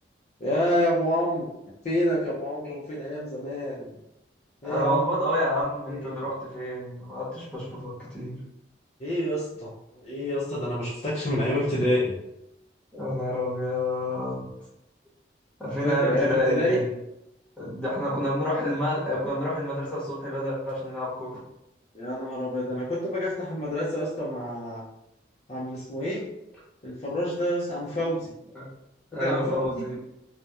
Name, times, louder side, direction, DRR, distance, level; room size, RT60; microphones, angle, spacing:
voice 1, 0.4-1.5 1.8-4.0 4.6-5.0 5.8-6.2 9.0-9.8 10.0-12.1 15.8-16.8 21.9-24.8 25.5-26.2 26.8-28.3 29.2-29.8, left 1 dB, 35° left, -6 dB, 0.4 m, -28 dB
voice 2, 4.6-8.4 12.9-14.4 15.6-16.8 17.6-21.4 28.5-28.6 29.1-30.0, equal, 5° left, -8 dB, 0.8 m, -28 dB
2.8 x 2.1 x 2.3 m, 0.85 s
head